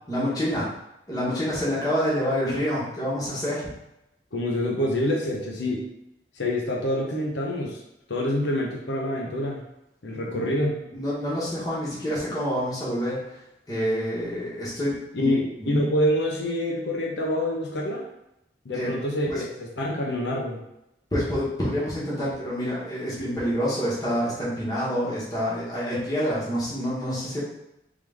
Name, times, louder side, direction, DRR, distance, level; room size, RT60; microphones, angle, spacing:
voice 1, 0.1-0.7 1.1-3.6 10.3-10.4 10.9-13.2 13.7-15.3 15.6-15.8 18.7-18.9 19.3-19.4 21.1-27.4, equal, 20° left, -9 dB, 1.2 m, -27 dB
voice 2, 4.3-5.8 6.4-7.8 8.1-9.6 10.0-10.8 15.1-18.0 18.6-20.6, left 1 dB, 90° left, -2 dB, 0.8 m, -26 dB
3.7 x 3.2 x 3.4 m, 0.87 s
head